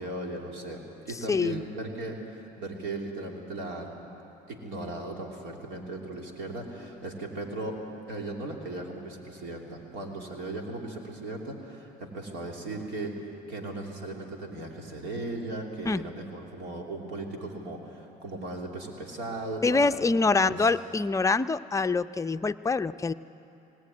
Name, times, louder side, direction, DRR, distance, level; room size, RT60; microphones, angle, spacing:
voice 1, 0.0-4.1 4.5-7.8 8.1-20.7, right 2 dB, 75° right, 1 dB, 3.3 m, -37 dB
voice 2, 1.3-1.6 15.9-16.1 19.6-23.1, left 3 dB, 15° left, 10 dB, 0.5 m, -25 dB
19.0 x 18.0 x 9.5 m, 2.9 s
supercardioid pair, 75°, 19 cm